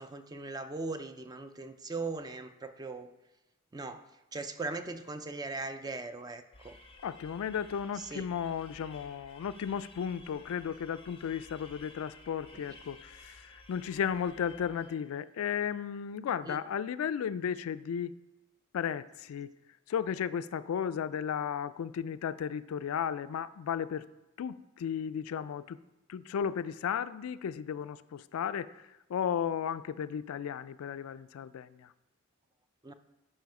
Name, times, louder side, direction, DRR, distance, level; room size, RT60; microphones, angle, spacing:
voice 1, 0.0-3.1 3.7-4.0 4.3-6.8 8.0-8.3 16.5-16.6 32.8-32.9, right 3 dB, 20° right, 9 dB, 0.4 m, -39 dB
sound 1, 6.5-15.1, left 2 dB, 25° left, 0.6 m, -54 dB
voice 2, 7.0-18.1 18.7-19.5 19.9-24.1 24.4-25.8 26.1-31.9, left 8 dB, 80° left, 14 dB, 0.3 m, -34 dB
11.0 x 4.3 x 4.8 m, 0.99 s
head